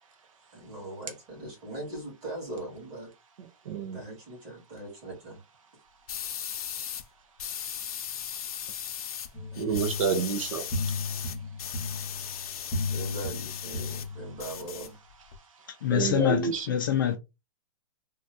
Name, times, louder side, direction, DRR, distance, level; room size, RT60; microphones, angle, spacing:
voice 1, 0.5-3.1 3.9-5.4 12.9-15.0, right 1 dB, 25° right, 2.0 m, -40 dB
voice 2, 3.4-4.0 8.5-8.7 9.5-11.0 12.2-12.3 15.3-16.7, right 5 dB, 60° right, 0.6 m, -31 dB
sound 1, 6.1-7.0 7.4-9.3 9.5-14.1 14.4-15.4, left 9 dB, 80° left, 0.6 m, -37 dB
sound 2, 9.3-14.6, left 3 dB, 15° left, 0.9 m, -35 dB
voice 3, 15.8-17.2, left 9 dB, 35° left, 0.4 m, -25 dB
3.5 x 2.3 x 2.7 m
hypercardioid pair, 180°, 19 cm